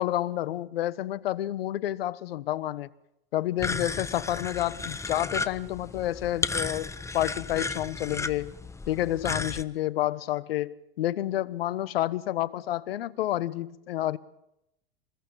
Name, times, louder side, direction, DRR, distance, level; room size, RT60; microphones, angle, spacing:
voice 1, 0.0-2.9 3.3-8.5 8.9-14.2, left 14 dB, 75° left, 1.3 m, -29 dB
sound 1, 3.6-9.6, left 3 dB, 10° left, 1.3 m, -34 dB
27.0 x 20.5 x 7.1 m
hypercardioid pair, 105°, 29 cm